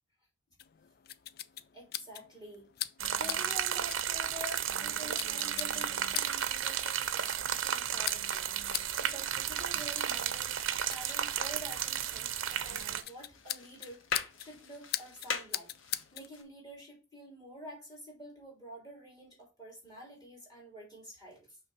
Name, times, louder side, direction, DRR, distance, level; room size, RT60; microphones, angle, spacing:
sound 1, 0.6-16.3, left 12 dB, 50° left, 0.3 m, -43 dB
voice 1, 1.7-2.7 3.2-14.0 14.4-15.7 16.1-21.6, right 1 dB, 20° left, 2.9 m, -48 dB
sound 2, 3.0-13.0, right 9 dB, 75° right, 0.6 m, -33 dB
sound 3, 11.3-16.4, left 6 dB, 80° left, 1.2 m, -42 dB
6.0 x 3.3 x 5.4 m
head